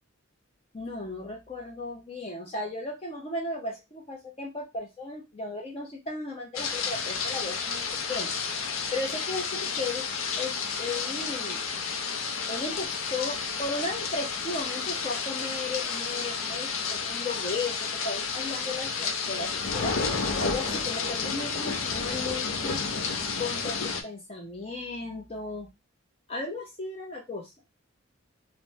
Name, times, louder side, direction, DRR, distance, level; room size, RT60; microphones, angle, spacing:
voice 1, 0.7-7.8 8.1-8.3 8.9-10.0 10.4-11.6 12.5-20.0 20.4-22.8 23.4-25.7 26.3-27.5, left 2 dB, 30° left, 0 dB, 0.6 m, -35 dB
sound 1, 6.5-24.0, left 5 dB, 75° left, 0.5 m, -31 dB
3.3 x 2.0 x 2.6 m, 0.22 s
head